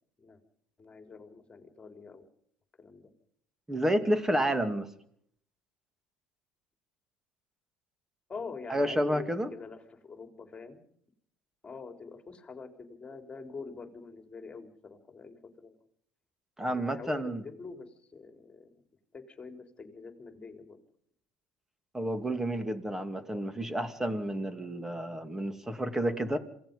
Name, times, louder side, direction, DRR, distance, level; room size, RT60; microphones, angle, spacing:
voice 1, 0.8-2.2 2.8-3.1 8.3-10.8 11.6-15.8 16.6-18.8 19.1-20.8, left 4 dB, 25° left, 5 dB, 3.9 m, -45 dB
voice 2, 3.7-4.9 8.7-9.5 16.6-17.4 21.9-26.4, right 1 dB, 10° right, 8 dB, 2.5 m, -30 dB
27.5 x 17.5 x 5.5 m, 0.67 s
supercardioid pair, 110°, 4 cm